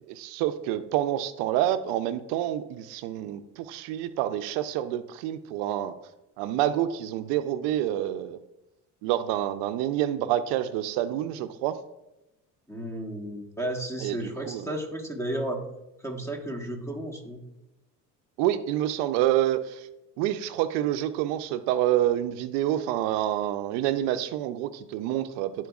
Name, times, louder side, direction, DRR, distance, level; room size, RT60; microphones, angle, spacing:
voice 1, 0.1-6.0 6.4-8.4 9.0-11.8 14.0-14.7 18.4-19.9 20.2-25.7, right 12 dB, 80° right, 11 dB, 0.6 m, -28 dB
voice 2, 12.7-15.6 16.0-17.4, right 1 dB, 5° left, 2 dB, 1.2 m, -33 dB
11.5 x 4.4 x 2.3 m, 0.93 s
supercardioid pair, 95°, 41 cm